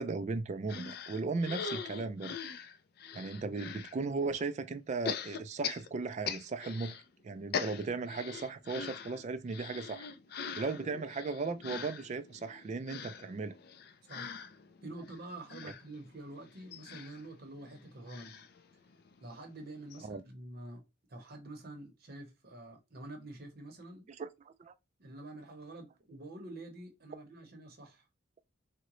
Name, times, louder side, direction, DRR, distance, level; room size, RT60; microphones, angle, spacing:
voice 1, 0.0-2.4 3.1-7.0 7.2-10.1 10.6-13.5 20.0-20.2 24.2-24.7, right 4 dB, 35° right, 0.3 m, -36 dB
sound 1, 0.7-4.0 5.0-7.0 7.3-19.2 19.6-19.7 19.9-20.0, left 6 dB, 50° left, 0.4 m, -42 dB
voice 2, 14.0-14.3 14.8-18.4 19.2-20.8 21.1-24.1 25.0-28.0, right 2 dB, 50° right, 0.8 m, -47 dB
3.7 x 2.1 x 3.0 m
head